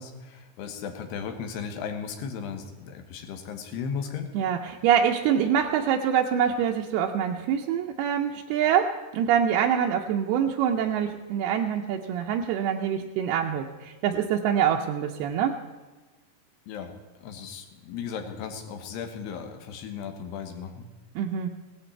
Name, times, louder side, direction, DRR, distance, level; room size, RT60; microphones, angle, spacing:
voice 1, 0.0-4.3 16.7-16.9 17.2-20.9, left 6 dB, 90° left, 6 dB, 3.4 m, -36 dB
voice 2, 4.3-15.6 21.2-21.5, right 8 dB, 80° right, 1 dB, 2.6 m, -25 dB
17.5 x 13.0 x 4.5 m, 1.2 s
omnidirectional pair, 4.6 m